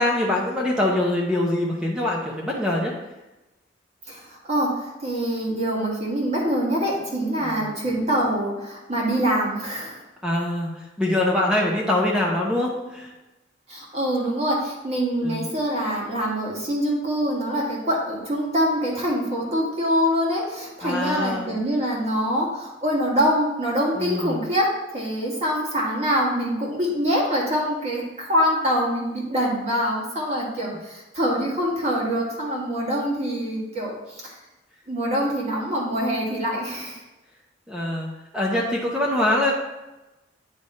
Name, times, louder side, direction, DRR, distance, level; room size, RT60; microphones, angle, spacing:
voice 1, 0.0-2.9 7.4-7.8 10.2-10.7 11.0-13.1 15.2-15.5 20.8-21.5 24.0-24.4 37.7-38.1 38.3-39.5, left 1 dB, 5° right, -3 dB, 0.8 m, -24 dB
voice 2, 4.1-10.0 13.7-34.3 34.9-37.0, equal, 35° right, -4 dB, 1.7 m, -25 dB
9.3 x 3.4 x 4.2 m, 1.0 s
head